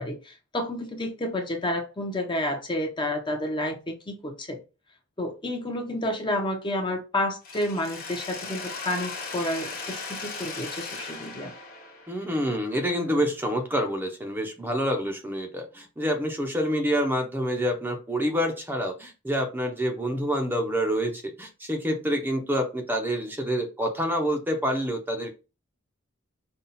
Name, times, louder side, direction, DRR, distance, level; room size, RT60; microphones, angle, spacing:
voice 1, 0.0-4.6 5.2-11.5, left 1 dB, 25° left, 0.8 m, -30 dB
Mechanisms, 7.4-13.3, left 4 dB, 45° left, 1.3 m, -38 dB
voice 2, 12.1-25.3, equal, 10° right, 0.7 m, -27 dB
5.5 x 2.3 x 4.1 m
head